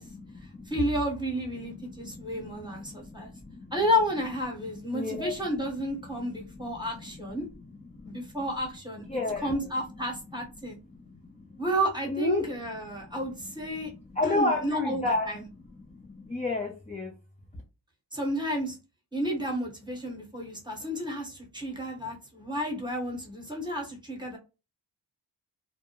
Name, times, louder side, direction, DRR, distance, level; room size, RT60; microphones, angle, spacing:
voice 1, 0.0-0.7 1.6-3.7 4.6-5.5 6.1-7.3 7.9-8.4 9.1-9.7 10.9-11.6 12.1-17.1, left 2 dB, 15° left, 0.6 m, -34 dB
voice 2, 0.7-3.3 3.7-7.5 8.0-10.8 11.6-13.9 14.2-15.4 18.1-18.8 19.1-24.4, equal, 10° right, 1.1 m, -31 dB
2.4 x 2.1 x 2.9 m
cardioid pair, 60°, 46 cm